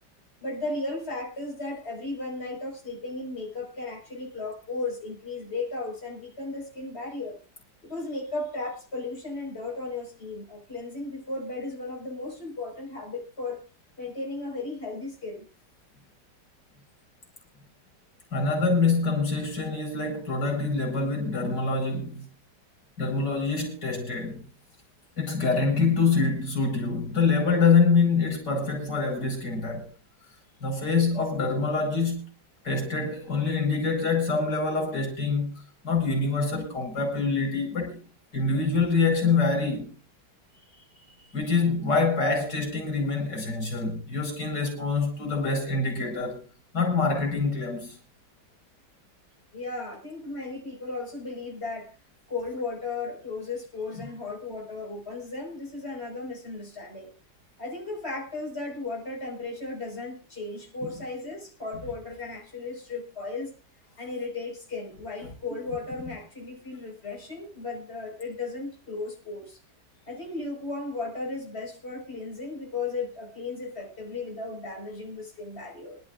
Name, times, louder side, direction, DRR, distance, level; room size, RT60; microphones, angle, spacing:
voice 1, 0.4-7.4 7.8-13.6 14.0-15.5 40.6-41.4 49.5-51.9 52.3-57.1 57.6-63.5 64.0-69.6 70.1-76.0, left 3 dB, 35° left, 5.4 m, -35 dB
voice 2, 18.3-22.3 23.0-24.5 25.2-29.9 30.6-32.2 32.6-35.5 35.8-38.0 38.3-39.9 41.3-46.4 46.7-48.0, left 4 dB, 90° left, 5.8 m, -25 dB
26.0 x 12.0 x 2.5 m
omnidirectional pair, 1.8 m